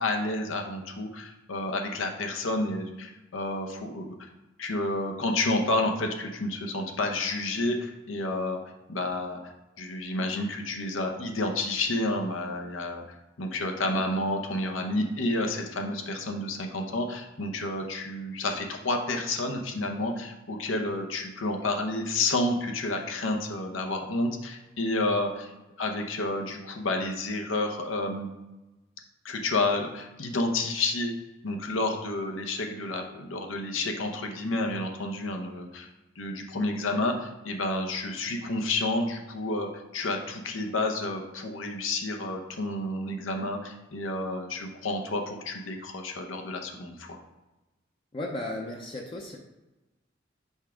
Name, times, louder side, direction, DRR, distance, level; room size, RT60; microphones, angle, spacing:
voice 1, 0.0-4.1 4.6-8.6 8.9-13.0 13.4-25.5 25.8-28.3 29.2-31.1 31.4-35.9 36.2-47.2, left 2 dB, 85° left, 3 dB, 0.8 m, -30 dB
voice 2, 48.1-49.4, left 1 dB, 25° left, -1 dB, 0.6 m, -35 dB
5.4 x 3.5 x 5.0 m, 1.1 s
head